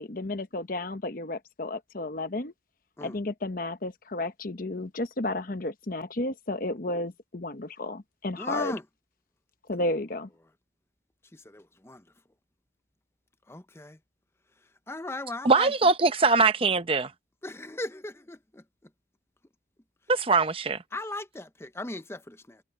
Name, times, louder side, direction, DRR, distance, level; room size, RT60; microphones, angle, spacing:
voice 1, 0.0-2.5 3.0-8.7 9.7-10.3, left 2 dB, 50° left, 1.0 m, -32 dB
voice 2, 8.4-8.8 11.3-12.0 13.5-14.0 14.9-15.7 17.4-18.6 20.9-22.6, left 2 dB, 15° left, 0.7 m, -37 dB
voice 3, 15.4-17.1 20.1-20.8, right 4 dB, 30° right, 0.8 m, -22 dB
head